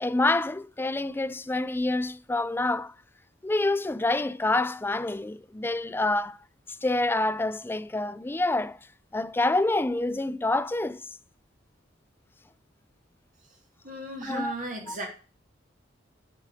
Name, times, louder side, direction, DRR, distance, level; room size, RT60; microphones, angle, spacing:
voice 1, 0.0-2.9 3.4-6.4 6.7-8.8 9.1-11.1 14.3-14.5 14.9-15.0, left 2 dB, 10° left, 0.3 m, -27 dB
voice 2, 13.8-15.1, right 1 dB, 45° right, 2.6 m, -35 dB
7.6 x 4.8 x 4.7 m
head